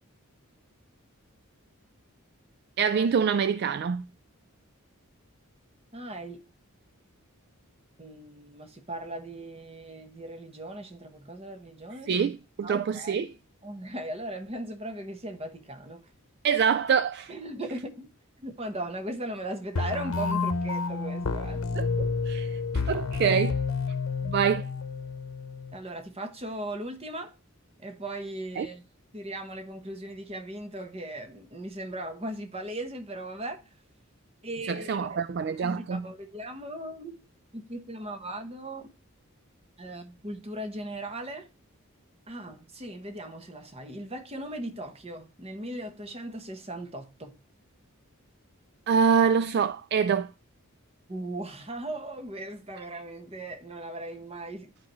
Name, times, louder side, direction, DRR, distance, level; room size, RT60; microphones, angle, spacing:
voice 1, 2.8-4.0 12.1-13.3 16.4-17.3 21.7-22.6 22.9-23.5 24.2-24.7 28.6-28.7 34.7-36.1 48.9-50.3, right 6 dB, 50° right, 0.3 m, -25 dB
voice 2, 5.9-6.4 8.0-12.2 12.6-13.3 13.6-16.1 17.3-18.1 18.4-21.8 25.7-27.3 27.8-28.8 29.1-33.6 34.4-35.2 35.6-37.2 37.5-38.9 39.8-41.5 42.3-47.4 51.1-54.7, right 1 dB, 30° right, 1.0 m, -38 dB
sound 1, 19.7-25.8, left 4 dB, 90° left, 0.8 m, -30 dB
11.5 x 4.8 x 3.1 m
head